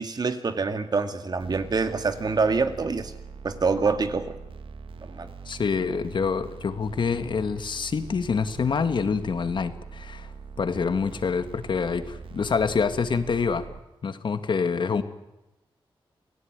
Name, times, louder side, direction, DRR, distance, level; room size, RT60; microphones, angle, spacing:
voice 1, 0.0-3.1 3.4-4.4 5.0-5.3, right 4 dB, 50° right, 9 dB, 2.2 m, -26 dB
sound 1, 1.4-13.8, right 5 dB, 75° right, 1.8 m, -42 dB
voice 2, 5.5-10.3 10.6-13.7 14.0-15.0, left 5 dB, 60° left, 10 dB, 1.9 m, -26 dB
28.0 x 17.5 x 9.6 m, 0.96 s
wide cardioid pair, 95°, 9 cm